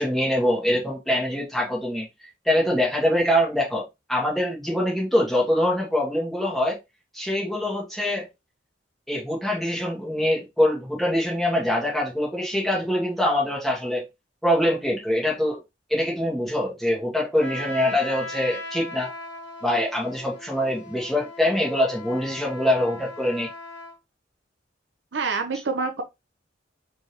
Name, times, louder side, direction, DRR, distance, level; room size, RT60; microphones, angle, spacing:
voice 1, 0.0-6.8 7.1-8.3 9.1-14.1 14.4-15.6 15.9-19.1 19.6-23.5, left 1 dB, ahead, 1.9 m, -24 dB
Trumpet, 17.3-24.0, left 2 dB, 65° left, 1.1 m, -38 dB
voice 2, 25.1-26.0, right 4 dB, 65° right, 0.7 m, -26 dB
4.4 x 3.5 x 2.9 m
head